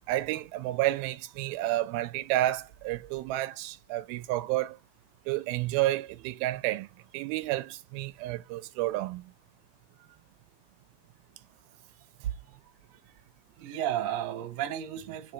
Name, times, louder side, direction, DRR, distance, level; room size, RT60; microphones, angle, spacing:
voice 1, 0.1-4.8 5.3-6.9 7.1-9.3, right 16 dB, 85° right, 2.4 m, -30 dB
voice 2, 13.6-15.3, right 11 dB, 60° right, 1.8 m, -33 dB
5.0 x 4.3 x 4.6 m
omnidirectional pair, 4.3 m